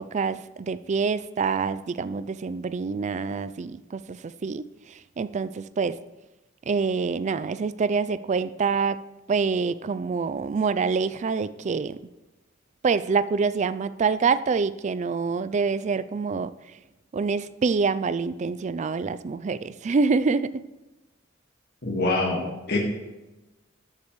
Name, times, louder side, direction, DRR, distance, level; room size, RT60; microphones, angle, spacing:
voice 1, 0.0-6.0 6.7-9.0 9.3-12.0 12.8-16.5 17.1-20.6, right 5 dB, 35° right, 16 dB, 0.3 m, -26 dB
voice 2, 21.8-22.8, left 2 dB, 55° left, -1 dB, 1.7 m, -25 dB
13.5 x 8.5 x 3.1 m, 1.1 s
head